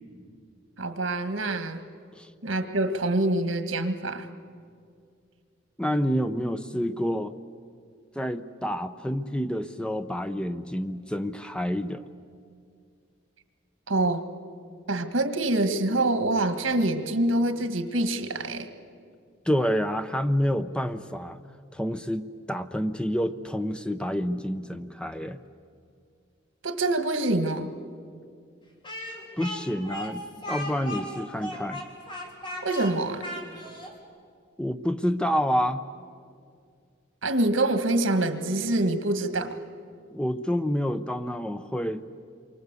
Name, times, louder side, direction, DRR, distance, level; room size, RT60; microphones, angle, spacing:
voice 1, 0.8-1.8 2.4-4.2 13.9-14.3 14.9-18.7 26.6-27.7 32.6-33.2 37.2-39.6, right 2 dB, 85° right, 8 dB, 1.7 m, -25 dB
voice 2, 5.8-7.3 8.1-12.0 19.5-21.4 21.7-25.4 29.4-31.8 34.6-35.8 40.1-42.1, equal, 5° left, 10 dB, 0.7 m, -28 dB
Speech, 28.8-33.9, left 1 dB, 25° left, 3.4 m, -37 dB
28.0 x 23.5 x 8.2 m, 2.2 s
head